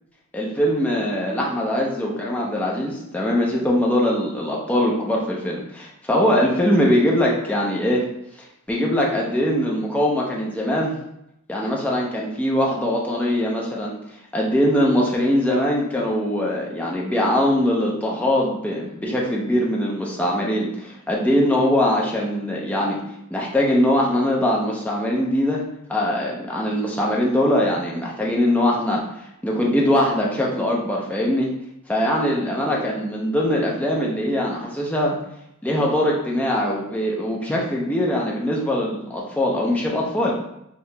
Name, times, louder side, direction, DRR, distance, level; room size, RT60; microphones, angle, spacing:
voice 1, 0.3-8.0 8.7-10.9 11.5-13.9 14.3-23.0 23.3-25.6 25.9-29.0 29.4-31.5 31.9-35.2 35.6-40.3, left 1 dB, 5° left, -3 dB, 0.4 m, -22 dB
2.9 x 2.7 x 3.3 m, 0.81 s
head